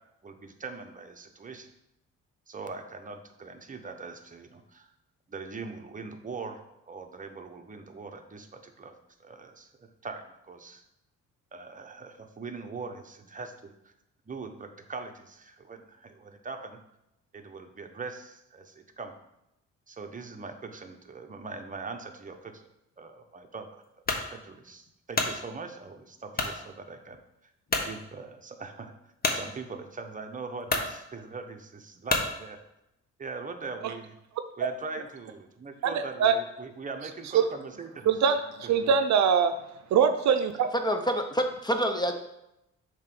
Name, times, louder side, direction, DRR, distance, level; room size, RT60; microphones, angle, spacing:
voice 1, 0.2-1.7 2.5-4.9 5.3-10.8 11.5-13.9 14.2-16.8 17.3-19.1 19.9-22.5 23.0-23.8 24.3-27.2 27.4-27.5 27.9-28.9 29.3-32.6 33.2-34.2 34.6-38.1 38.8-38.9, right 4 dB, 25° right, 5 dB, 0.9 m, -41 dB
sound 1, 24.1-24.3 24.9-25.4 26.3-26.6 27.1-27.2 27.7-27.9 29.2-29.4 30.2-30.3 30.6-30.9 32.1-32.3, left 3 dB, 30° left, 1.0 m, -28 dB
voice 2, 35.8-36.3 37.3-37.4 38.1-39.5 39.9-40.7, right 7 dB, 65° right, 8 dB, 0.6 m, -23 dB
voice 3, 40.8-42.1, equal, 15° left, 5 dB, 0.7 m, -27 dB
7.2 x 3.1 x 6.0 m, 0.87 s
cardioid pair, 90°, 30 cm